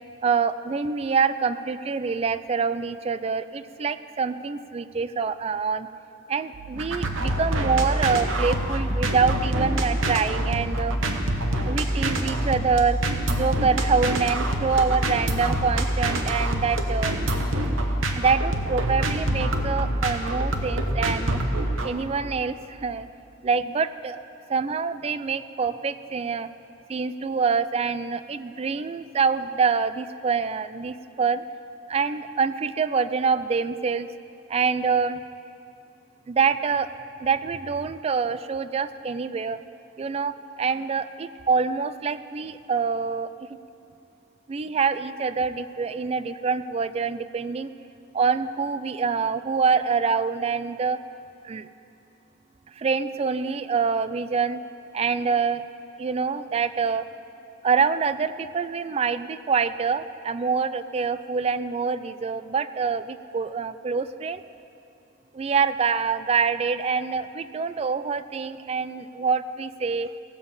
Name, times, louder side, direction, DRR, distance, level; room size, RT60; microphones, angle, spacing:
voice 1, 0.2-5.9 6.3-11.0 11.7-13.0 13.4-17.1 18.2-21.4 21.8-23.1 23.4-24.2 24.5-26.5 26.9-31.4 31.9-34.1 34.5-35.2 36.3-36.9 37.2-39.6 40.0-43.3 44.5-47.7 48.1-51.0 51.4-51.7 52.8-54.6 54.9-55.6 56.0-57.0 57.6-64.4 65.3-70.1, right 5 dB, 30° right, 13 dB, 0.3 m, -25 dB
sound 1, 6.5-21.9, right 1 dB, 80° right, 1.0 m, -26 dB
17.5 x 7.1 x 5.5 m, 2.7 s
head